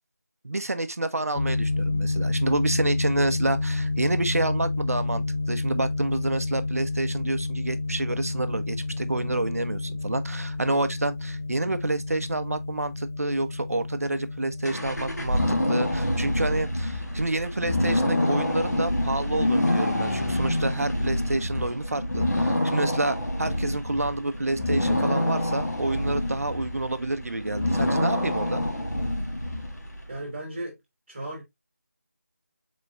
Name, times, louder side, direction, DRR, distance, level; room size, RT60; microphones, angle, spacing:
voice 1, 0.4-28.6, right 2 dB, 60° right, 0.7 m, -28 dB
sound 1, 1.3-15.8, left 2 dB, 55° left, 0.5 m, -30 dB
sound 2, 14.7-30.1, left 1 dB, 85° left, 1.8 m, -27 dB
voice 2, 30.1-30.8 31.1-31.4, right 1 dB, 25° right, 1.5 m, -35 dB
4.8 x 4.2 x 2.3 m
figure-of-eight pair, 165°, 9 cm